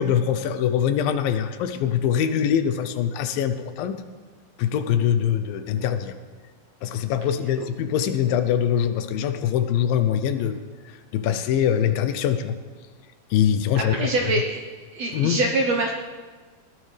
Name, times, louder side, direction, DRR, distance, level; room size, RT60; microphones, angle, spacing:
voice 1, 0.0-4.0 4.6-6.2 6.8-10.6 11.1-12.6 13.3-14.3 15.1-15.4, left 9 dB, 80° left, 9 dB, 2.4 m, -23 dB
voice 2, 13.8-14.6 14.9-15.9, right 2 dB, 70° right, 1 dB, 1.7 m, -24 dB
20.0 x 16.0 x 3.4 m, 1.4 s
omnidirectional pair, 4.2 m